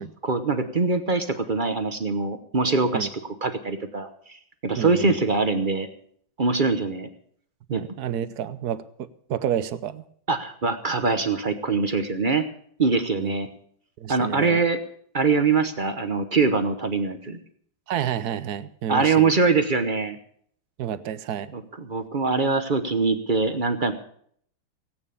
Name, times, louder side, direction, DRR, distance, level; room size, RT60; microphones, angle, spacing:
voice 1, 0.2-3.1 3.4-5.9 6.4-7.1 7.7-7.8 10.3-12.4 12.8-13.5 14.1-14.8 15.1-17.4 18.9-20.2 21.5-23.9, right 4 dB, 35° right, 8 dB, 0.8 m, -23 dB
voice 2, 4.8-5.2 7.7-10.0 13.2-13.3 14.0-14.6 17.9-19.4 20.8-21.5, right 9 dB, 60° right, 14 dB, 1.1 m, -30 dB
17.5 x 9.1 x 6.9 m, 0.62 s
omnidirectional pair, 2.2 m